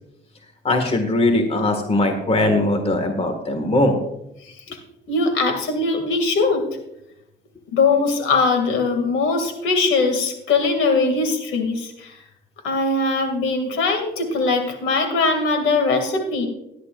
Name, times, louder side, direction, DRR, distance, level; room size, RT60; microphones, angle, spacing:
voice 1, 0.6-3.9, left 2 dB, 30° left, 5 dB, 1.9 m, -20 dB
voice 2, 4.4-4.8 5.1-6.7 7.7-12.2 12.6-16.5, left 3 dB, 85° left, 5 dB, 2.4 m, -21 dB
18.0 x 11.0 x 2.5 m, 0.84 s
cardioid pair, 90°, 20 cm